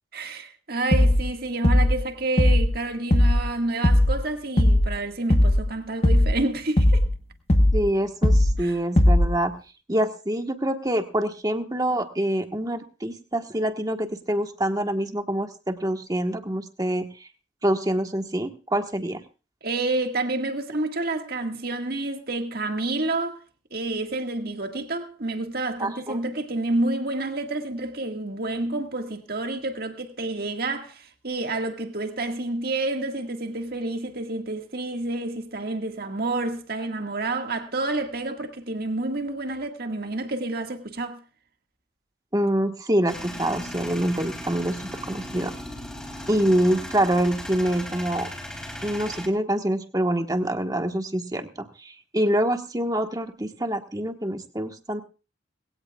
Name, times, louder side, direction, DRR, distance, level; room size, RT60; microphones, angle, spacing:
voice 1, 0.1-7.0 8.6-8.8 19.6-23.4 23.7-41.2, right 2 dB, 55° right, 1.8 m, -29 dB
sound 1, 0.9-1.3 1.6-2.0 2.4-2.7 3.1-3.5 3.8-4.2 4.6-4.9 5.3-5.7 6.0-6.4 6.8-7.1 7.5-7.9 8.2-8.6 9.0-9.4, left 1 dB, 35° left, 1.1 m, -18 dB
voice 2, 7.7-9.5 9.9-17.3 17.6-19.2 25.8-26.2 42.3-45.5 46.3-48.3 48.8-55.0, right 1 dB, 20° right, 1.3 m, -26 dB
Male speech man speaking / Vehicle / Engine starting, 43.1-49.3, left 1 dB, 5° left, 3.7 m, -37 dB
20.5 x 17.0 x 2.4 m
head